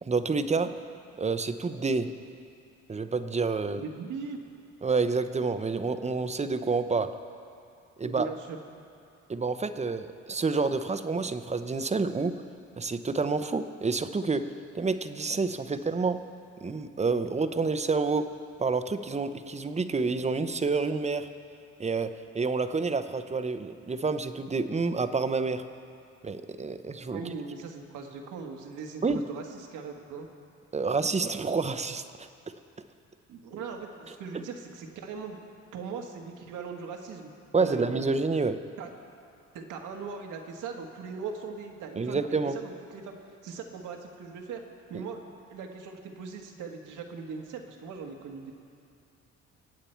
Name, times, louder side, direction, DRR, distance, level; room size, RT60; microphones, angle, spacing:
voice 1, 0.0-0.7 1.2-2.1 2.9-3.8 4.8-7.1 8.0-8.3 9.3-12.3 12.8-14.4 14.7-16.2 16.6-18.3 18.6-21.3 21.8-22.1 22.3-25.6 26.2-27.2 29.0-29.2 30.7-32.3 37.5-38.6 42.0-42.5 44.9-45.0, right 4 dB, 20° right, 10 dB, 0.7 m, -28 dB
voice 2, 3.8-4.4 8.0-8.6 27.1-30.3 33.3-35.4 35.7-37.3 37.6-38.1 38.8-38.9 39.5-43.2 43.4-44.6 44.9-48.5, right 5 dB, 85° right, 2 dB, 1.6 m, -39 dB
25.0 x 8.7 x 4.5 m, 2.5 s
cardioid pair, 90°, 30 cm